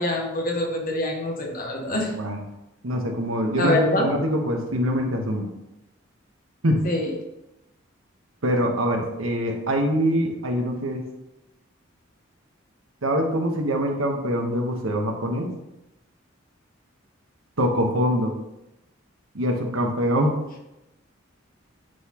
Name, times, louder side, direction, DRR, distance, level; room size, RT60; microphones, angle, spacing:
voice 1, 0.0-2.1 3.6-4.1 6.8-7.1, left 1 dB, 45° left, 1 dB, 1.2 m, -25 dB
voice 2, 1.9-2.4 2.8-5.5 6.6-6.8 8.4-11.0 13.0-15.5 17.6-18.3 19.3-20.4, equal, 85° right, 2 dB, 1.1 m, -24 dB
9.1 x 4.0 x 3.0 m, 0.91 s
head